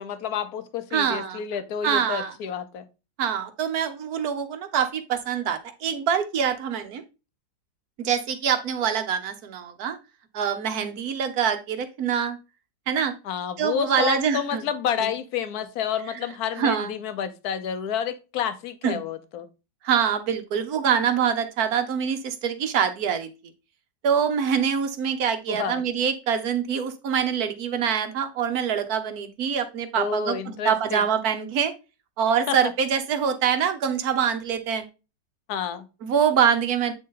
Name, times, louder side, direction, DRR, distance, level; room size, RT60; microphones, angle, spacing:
voice 1, 0.0-2.8 13.2-19.5 25.5-25.8 30.0-31.0 32.5-32.6 35.5-35.9, left 8 dB, 60° left, 11 dB, 1.2 m, -29 dB
voice 2, 0.9-1.4 1.8-2.3 3.2-7.0 8.0-10.0 10.3-12.4 12.9-13.1 13.6-14.6 16.6-16.9 18.8-19.0 19.8-23.3 24.0-31.7 32.2-34.8 36.0-36.9, right 7 dB, 60° right, 9 dB, 1.4 m, -25 dB
8.4 x 3.9 x 3.8 m, 0.29 s
omnidirectional pair, 2.0 m